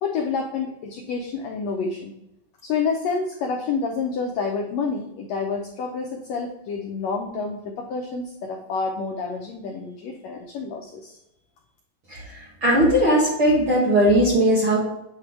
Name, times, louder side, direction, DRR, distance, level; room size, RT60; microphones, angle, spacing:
voice 1, 0.0-2.1 2.6-11.2, left 5 dB, 90° left, 1 dB, 1.5 m, -28 dB
voice 2, 12.1-14.8, right 1 dB, 50° right, -6 dB, 1.7 m, -19 dB
7.9 x 3.4 x 4.6 m, 0.89 s
omnidirectional pair, 3.8 m